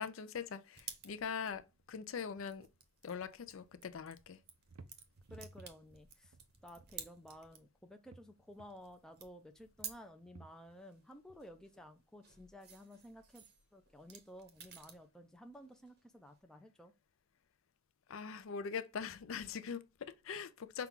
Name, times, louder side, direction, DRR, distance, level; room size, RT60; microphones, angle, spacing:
voice 1, 0.0-1.6 1.9-2.7 3.0-4.4 18.1-20.9, left 6 dB, 65° left, 0.4 m, -42 dB
sound 1, 0.7-7.8 8.1-10.1 10.5-15.1 15.4-16.4, right 7 dB, 50° right, 0.8 m, -54 dB
sound 2, 1.4-2.8 3.1-3.9 4.3-7.5 7.8-8.9 9.8-10.9 11.3-11.4, right 3 dB, 85° right, 0.5 m, -59 dB
voice 2, 5.3-6.4 6.6-13.4 13.7-16.9, equal, 5° left, 0.4 m, -54 dB
5.7 x 2.3 x 3.7 m
head